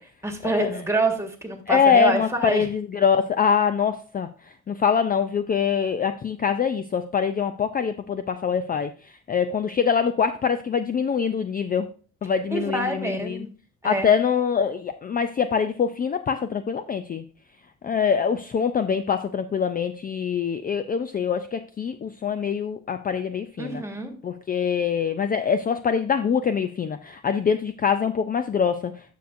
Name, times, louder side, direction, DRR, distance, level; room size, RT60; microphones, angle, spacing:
voice 1, 0.2-2.7 12.5-13.5 13.8-14.1 23.6-24.1, right 2 dB, 10° right, 4 dB, 1.6 m, -26 dB
voice 2, 1.7-4.3 4.7-11.9 12.2-13.5 13.8-17.2 17.8-23.8 24.2-28.9, left 7 dB, 30° left, 10 dB, 0.4 m, -24 dB
9.2 x 6.5 x 2.6 m, 0.39 s
cardioid pair, 90°, 30 cm